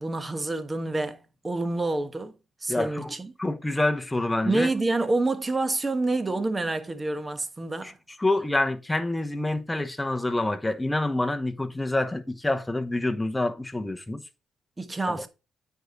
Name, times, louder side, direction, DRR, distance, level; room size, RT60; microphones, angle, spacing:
voice 1, 0.0-2.3 2.6-3.3 4.4-8.0 14.8-15.3, right 2 dB, 20° right, 1.2 m, -28 dB
voice 2, 2.7-4.7 7.8-7.9 8.2-14.2 15.1-15.2, left 2 dB, 10° left, 1.1 m, -27 dB
9.1 x 4.8 x 4.1 m
cardioid pair, 90°, 0 cm